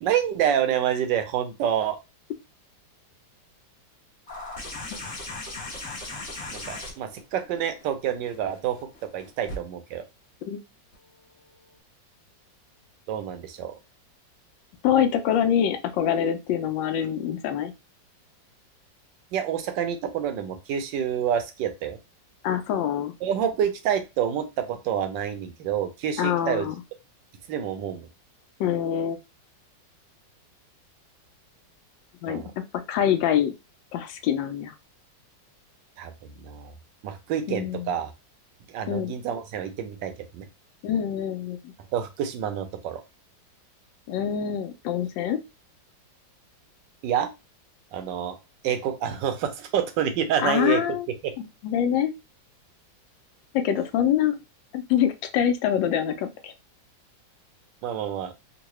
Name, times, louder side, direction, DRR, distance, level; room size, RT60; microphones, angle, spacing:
voice 1, 0.0-2.0 6.5-10.0 13.1-13.7 19.3-22.0 23.2-26.7 27.5-28.1 32.3-32.5 36.0-36.7 37.0-38.1 38.7-40.5 41.9-43.0 47.0-47.3 47.9-48.4 48.6-50.9 51.2-51.3 54.3-54.4 57.8-58.3, right 9 dB, 80° right, 8 dB, 1.3 m, -28 dB
sound 1, 4.3-9.6 10.9-11.0, left 2 dB, 35° left, 1.2 m, -38 dB
voice 2, 14.8-17.7 22.4-23.1 26.2-26.7 28.6-29.2 32.2-32.4 32.7-33.5 33.9-34.7 37.5-37.9 38.9-39.2 40.8-41.7 44.1-45.4 50.4-51.1 51.4-52.1 53.5-54.4 54.7-56.5, left 9 dB, 85° left, 8 dB, 1.3 m, -25 dB
3.7 x 2.2 x 3.0 m, 0.24 s
omnidirectional pair, 2.0 m